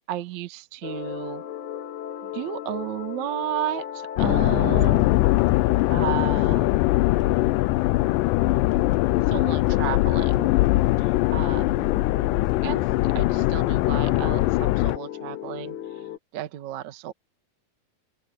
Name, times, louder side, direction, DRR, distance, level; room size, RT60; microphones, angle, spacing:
voice 1, 0.1-1.4 2.2-5.1 5.9-6.7 9.3-10.5 11.0-11.8 12.6-16.1 16.3-17.1, right 12 dB, 65° right, 2.2 m, -33 dB
sound 1, 0.8-16.2, left 9 dB, 60° left, 2.6 m, -36 dB
sound 2, 4.2-15.0, left 19 dB, 85° left, 1.9 m, -21 dB
open air
omnidirectional pair, 4.3 m